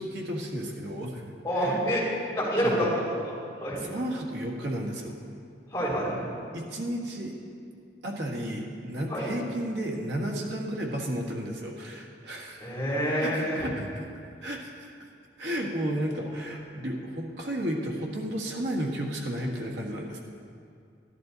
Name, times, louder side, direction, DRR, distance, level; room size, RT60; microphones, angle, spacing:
voice 1, 0.0-1.2 1.6-1.9 2.6-2.9 3.9-5.2 6.5-7.3 8.0-12.7 13.2-13.8 14.4-14.9 15.4-20.2, equal, 75° right, 0 dB, 1.6 m, -33 dB
voice 2, 1.4-2.0 2.3-2.9 3.2-3.3 3.6-3.8 5.7-6.2 9.1-9.3 12.6-13.7 16.2-16.3, equal, 15° left, -6 dB, 3.2 m, -27 dB
13.0 x 11.0 x 4.0 m, 2.4 s
head